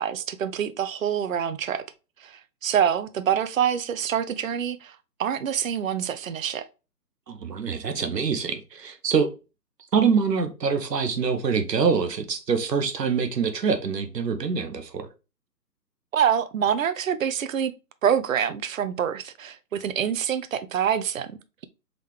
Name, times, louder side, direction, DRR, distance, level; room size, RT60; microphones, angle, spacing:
voice 1, 0.0-1.8 2.2-6.7 16.1-17.7 18.0-21.6, right 8 dB, 55° right, 0.5 m, -26 dB
voice 2, 7.3-9.3 9.9-15.1, right 5 dB, 75° right, 1.0 m, -25 dB
3.7 x 3.0 x 3.5 m
figure-of-eight pair, 150°, 49 cm